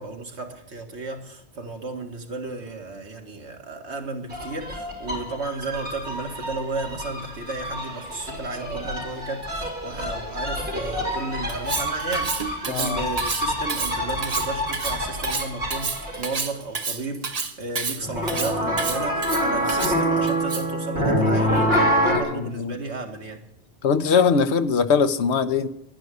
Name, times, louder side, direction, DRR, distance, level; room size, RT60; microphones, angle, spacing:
voice 1, 0.0-23.4, right 3 dB, 90° right, 3 dB, 2.1 m, -33 dB
sound 1, 4.3-16.4 18.0-22.2, equal, 65° right, 4.8 m, -26 dB
Cutlery silverware, 11.5-20.8, right 4 dB, 35° right, 1.0 m, -30 dB
voice 2, 12.7-13.1 22.3-22.8 23.8-25.7, left 6 dB, 80° left, 12 dB, 1.1 m, -21 dB
11.0 x 10.5 x 9.2 m, 0.79 s
omnidirectional pair, 1.1 m